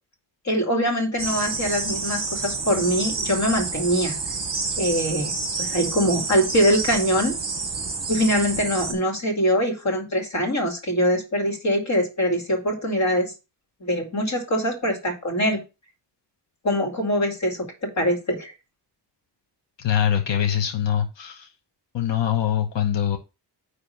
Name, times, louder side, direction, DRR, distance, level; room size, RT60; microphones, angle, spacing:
voice 1, 0.4-4.2 4.8-5.3 5.6-7.3 8.1-13.3 13.8-15.6 16.6-18.5, equal, 40° left, 2 dB, 2.3 m, -23 dB
sound 1, 1.2-8.9, right 4 dB, 30° right, 3.8 m, -29 dB
voice 2, 19.8-21.5 21.9-23.2, left 10 dB, 85° left, 6 dB, 1.1 m, -23 dB
9.8 x 3.4 x 5.7 m, 0.28 s
wide cardioid pair, 175°, 43 cm